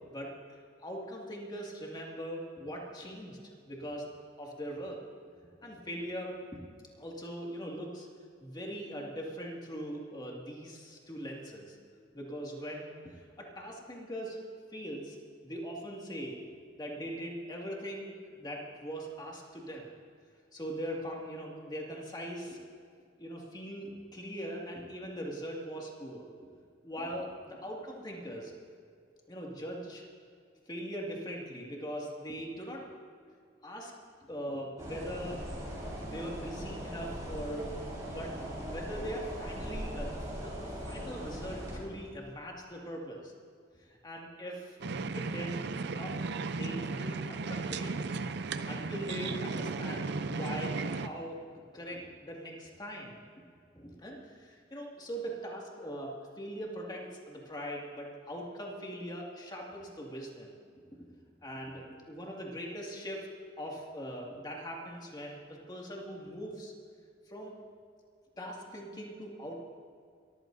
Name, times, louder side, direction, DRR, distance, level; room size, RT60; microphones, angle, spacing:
voice 1, 0.8-3.4 3.7-4.1 4.4-5.0 5.6-6.6 7.0-8.1 8.4-11.8 12.1-14.4 14.7-15.2 15.4-16.4 16.8-19.9 20.5-22.6 23.2-26.3 26.8-28.5 29.3-30.0 30.7-32.8 33.6-33.9 34.3-35.4 36.1-37.7 38.1-38.4 38.6-40.6 40.8-43.3 44.0-44.8 45.1-45.6 45.9-46.2 46.5-48.1 48.7-51.4 51.7-53.1 53.7-60.5 61.4-63.3 63.6-66.7 67.3-67.5 68.4-69.6, equal, 25° left, -2 dB, 2.1 m, -41 dB
sound 1, 34.8-41.8, equal, 20° right, 4.5 m, -40 dB
sound 2, 44.8-51.1, right 4 dB, 65° right, 0.6 m, -35 dB
23.0 x 14.5 x 2.7 m, 2.2 s
head